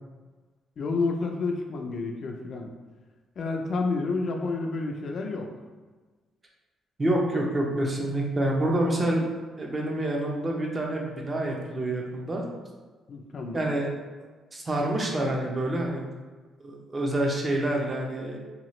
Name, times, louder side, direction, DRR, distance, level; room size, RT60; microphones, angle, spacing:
voice 1, 0.8-2.7 3.4-5.5 13.1-13.7, left 3 dB, 55° left, 3 dB, 0.4 m, -29 dB
voice 2, 7.0-9.2 9.6-12.5 13.5-13.9 14.5-16.1 16.6-18.4, right 1 dB, 30° right, -1 dB, 0.6 m, -27 dB
2.9 x 2.3 x 3.0 m, 1.3 s
cardioid pair, 90°, 0 cm